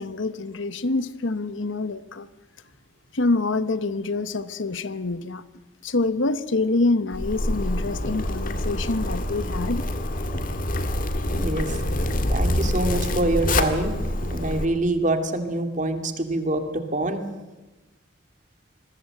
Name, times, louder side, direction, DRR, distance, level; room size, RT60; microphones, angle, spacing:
voice 1, 0.0-2.3 3.1-5.4 5.8-9.9, left 2 dB, 75° left, 14 dB, 1.1 m, -26 dB
Zipper (clothing), 7.1-14.6, left 1 dB, 45° left, 2.0 m, -26 dB
voice 2, 11.3-11.8 12.3-13.9 14.3-17.2, right 2 dB, 40° right, 7 dB, 2.4 m, -25 dB
26.0 x 21.0 x 7.8 m, 1.1 s
head